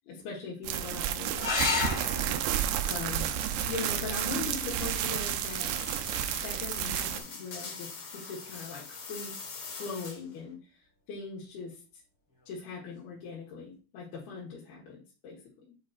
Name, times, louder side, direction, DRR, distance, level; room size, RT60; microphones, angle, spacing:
voice 1, 0.1-3.3 3.7-5.7 6.4-9.3 9.8-12.0 12.5-15.4, left 4 dB, 85° left, -5 dB, 3.4 m, -41 dB
sound 1, 0.6-7.2, right 11 dB, 85° right, 2.6 m, -31 dB
sound 2, 1.4-6.4 8.3-8.9 12.4-12.5 12.8-12.9, left 4 dB, 40° left, 2.6 m, -36 dB
sound 3, 2.8-10.4, left 4 dB, 60° left, 1.4 m, -44 dB
9.1 x 5.1 x 2.4 m, 0.35 s
omnidirectional pair, 4.3 m